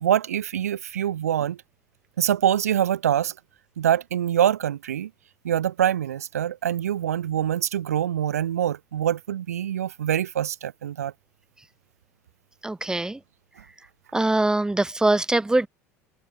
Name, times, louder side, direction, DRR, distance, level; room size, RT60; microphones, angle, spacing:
voice 1, 0.0-1.6 2.2-3.3 3.8-5.1 5.4-11.1, right 10 dB, 70° right, 0.9 m, -24 dB
voice 2, 12.6-13.2 14.1-15.7, right 2 dB, 10° right, 1.5 m, -22 dB
figure-of-eight pair, 65°, 8 cm